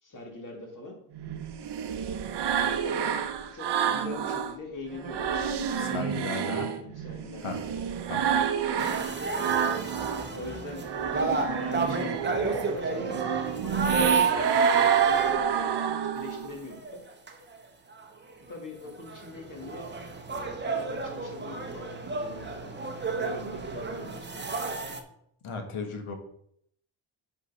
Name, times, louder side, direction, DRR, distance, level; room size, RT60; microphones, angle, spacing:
voice 1, 0.0-1.0 2.5-3.2 3.5-5.3 5.7-7.8 9.3-9.5 10.3-10.9 11.2-17.0 18.5-19.9 20.2-22.8 23.2-24.5, left 2 dB, 40° left, 2 dB, 1.9 m, -42 dB
sound 1, 1.1-4.6 4.9-10.3 10.7-16.6, right 8 dB, 55° right, 0.7 m, -29 dB
voice 2, 5.8-6.7 7.4-7.6 8.0-8.3 25.4-26.1, left 4 dB, 80° left, 5 dB, 1.6 m, -35 dB
sound 2, 8.8-16.0 16.7-16.9 17.3-17.4 18.0-18.1 18.5-18.6 18.8-25.0, right 4 dB, 20° right, 0.8 m, -30 dB
6.5 x 5.3 x 5.4 m, 0.70 s
wide cardioid pair, 180°, 49 cm